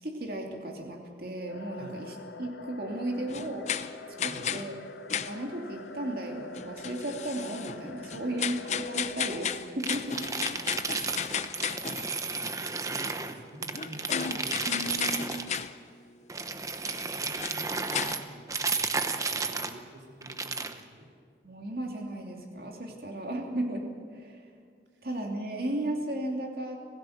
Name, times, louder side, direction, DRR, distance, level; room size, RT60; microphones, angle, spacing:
voice 1, 0.0-3.7 4.2-4.7 5.3-10.2 10.5-10.6 14.7-15.3 21.4-23.9 24.1-24.5 25.0-26.8, right 1 dB, 55° right, 1 dB, 2.8 m, -35 dB
sound 1, 1.5-9.2, left 2 dB, 80° left, 1.1 m, -46 dB
voice 2, 1.7-2.1 4.2-4.6 8.0-8.5 11.5-15.0 15.8-16.1 17.0-21.2 24.9-25.1, right 1 dB, 85° right, 0 dB, 3.6 m, -50 dB
sound 2, 3.3-4.7 5.1-5.4 6.5-12.1 13.7-15.7 16.9-17.1 17.4-17.6 17.9-18.1, left 7 dB, 40° left, 0.6 m, -34 dB
sound 3, 9.8-13.3 13.6-15.7 16.3-19.8 20.2-20.8, right 4 dB, 20° right, 0.9 m, -33 dB
26.0 x 17.0 x 6.6 m, 2.1 s
head